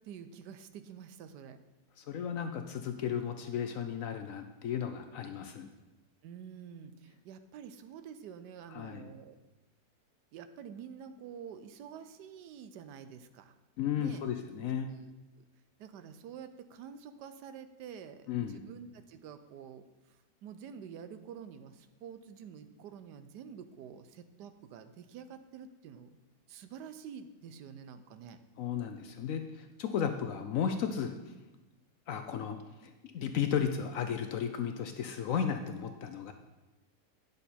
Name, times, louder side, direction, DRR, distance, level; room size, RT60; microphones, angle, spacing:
voice 1, 0.0-1.6 6.2-9.4 10.3-13.5 13.9-14.3 14.9-15.1 15.4-15.5 15.8-26.2 26.5-28.4, right 7 dB, 80° right, 10 dB, 1.2 m, -48 dB
voice 2, 2.0-5.7 8.7-9.0 13.8-14.9 18.3-18.6 28.6-31.2 32.1-36.3, left 8 dB, 70° left, 7 dB, 0.8 m, -34 dB
9.9 x 6.7 x 4.2 m, 1.1 s
omnidirectional pair, 1.9 m